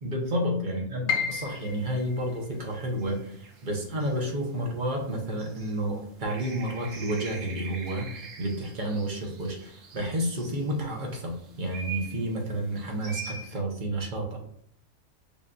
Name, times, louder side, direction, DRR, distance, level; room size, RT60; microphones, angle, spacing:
voice 1, 0.0-14.4, right 1 dB, 45° right, 1 dB, 0.8 m, -31 dB
Piano, 1.1-7.0 7.3-8.5 8.9-9.0 9.7-10.0, left 7 dB, 65° left, 0.8 m, -37 dB
sound 1, 1.1-13.6, right 5 dB, 85° right, 1.1 m, -46 dB
5.3 x 2.5 x 2.2 m, 0.68 s
omnidirectional pair, 1.3 m